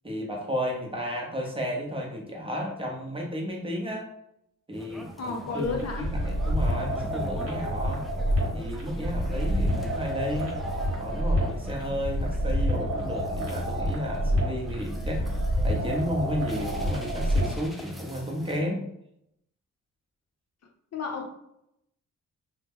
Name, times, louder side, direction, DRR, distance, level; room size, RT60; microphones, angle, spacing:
voice 1, 0.0-4.1 4.7-8.1 8.5-10.5 11.0-15.2 15.6-18.9, equal, 15° right, -1 dB, 0.7 m, -33 dB
sound 1, 4.7-18.6, equal, ahead, 0.3 m, -43 dB
voice 2, 5.2-6.1 20.9-21.3, left 4 dB, 50° left, 3 dB, 0.6 m, -31 dB
sound 2, 5.6-17.7, equal, 45° right, 1.1 m, -28 dB
2.8 x 2.0 x 3.5 m, 0.78 s
cardioid pair, 100°, 33 cm